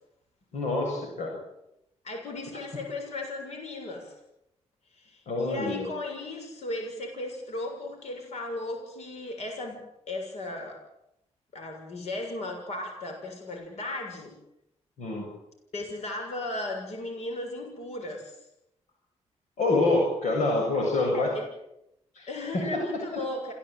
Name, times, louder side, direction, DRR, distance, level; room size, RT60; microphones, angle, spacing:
voice 1, 0.5-1.4 5.3-5.9 15.0-15.3 19.6-21.3 22.1-22.3, left 2 dB, 85° left, 0 dB, 7.5 m, -26 dB
voice 2, 2.0-4.2 4.9-9.8 10.1-10.8 11.5-14.3 15.7-18.4 20.7-20.8 21.1-21.4 22.3-23.5, left 2 dB, 65° left, 3 dB, 6.9 m, -36 dB
28.0 x 16.5 x 9.2 m, 0.83 s
cardioid pair, 115°, 12 cm